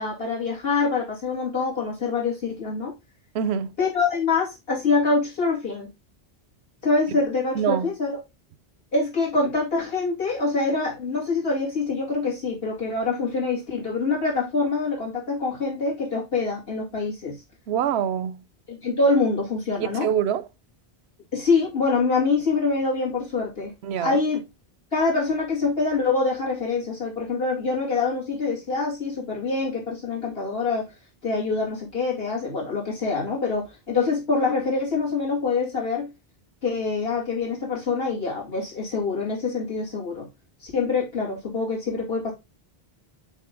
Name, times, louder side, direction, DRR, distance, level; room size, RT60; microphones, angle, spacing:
voice 1, 0.0-2.9 3.8-5.9 6.8-8.2 8.9-17.4 18.7-20.1 21.3-24.4 24.9-30.9 31.2-36.1 36.6-40.3 40.6-42.3, left 4 dB, 65° left, 2.7 m, -25 dB
voice 2, 3.3-3.7 7.5-7.9 17.7-18.4 19.8-20.5 23.8-24.2, right 8 dB, 80° right, 0.8 m, -25 dB
6.4 x 4.1 x 3.7 m
omnidirectional pair, 1.1 m